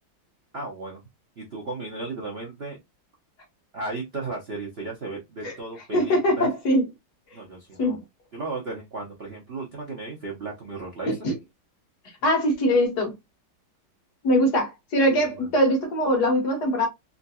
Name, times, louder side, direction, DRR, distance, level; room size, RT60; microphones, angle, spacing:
voice 1, 0.5-1.0 1.4-2.8 3.7-6.5 7.3-8.0 8.3-11.2 15.1-15.5, right 3 dB, 55° right, 0.7 m, -35 dB
voice 2, 5.9-6.9 7.8-8.0 11.0-11.4 12.2-13.1 14.2-16.9, equal, 55° left, 1.6 m, -22 dB
3.7 x 2.7 x 2.2 m
omnidirectional pair, 2.2 m